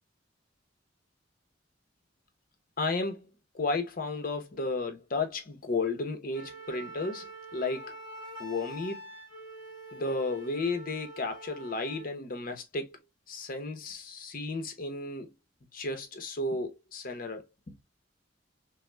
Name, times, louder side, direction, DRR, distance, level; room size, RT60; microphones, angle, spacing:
voice 1, 2.8-3.3 3.5-7.9 8.4-9.0 9.9-13.0 13.3-15.3 15.7-17.8, left 3 dB, 50° left, 0.9 m, -33 dB
Wind instrument woodwind instrument, 6.3-12.1, right 1 dB, 25° left, 1.3 m, -45 dB
5.6 x 2.1 x 2.2 m
head